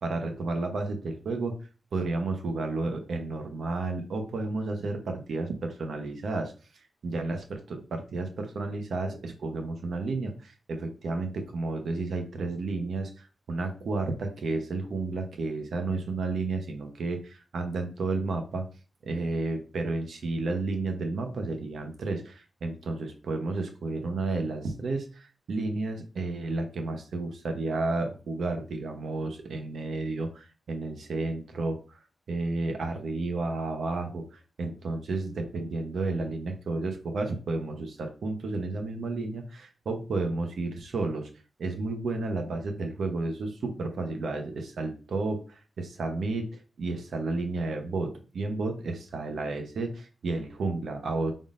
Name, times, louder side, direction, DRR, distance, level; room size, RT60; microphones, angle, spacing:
voice 1, 0.0-1.5 1.9-18.7 19.0-32.0 32.3-41.3 41.6-46.5 46.8-51.3, right 3 dB, 80° right, 4 dB, 0.8 m, -32 dB
5.1 x 3.6 x 2.5 m, 0.34 s
wide cardioid pair, 125°, 0 cm